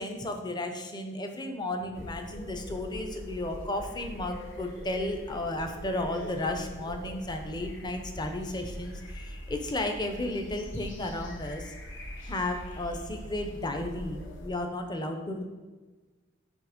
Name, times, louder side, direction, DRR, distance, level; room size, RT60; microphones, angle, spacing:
voice 1, 0.0-11.7 12.2-15.5, left 1 dB, 20° left, 5 dB, 0.6 m, -33 dB
sound 1, 1.9-14.5, equal, 60° left, 0.9 m, -43 dB
8.3 x 2.9 x 5.1 m, 1.3 s
head